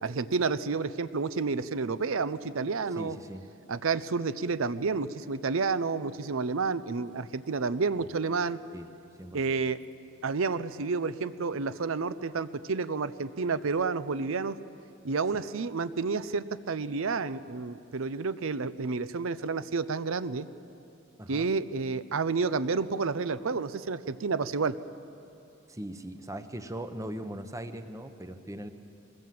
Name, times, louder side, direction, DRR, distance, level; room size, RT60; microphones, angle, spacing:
voice 1, 0.0-3.2 3.7-8.6 9.3-9.8 10.2-14.6 15.0-20.5 21.3-24.7, right 4 dB, 65° right, 14 dB, 0.6 m, -30 dB
voice 2, 3.0-3.4 8.7-8.9 9.2-9.5 15.3-15.4 21.2-21.5 25.7-28.7, right 1 dB, 15° right, 9 dB, 0.9 m, -40 dB
22.5 x 20.5 x 7.7 m, 2.8 s
head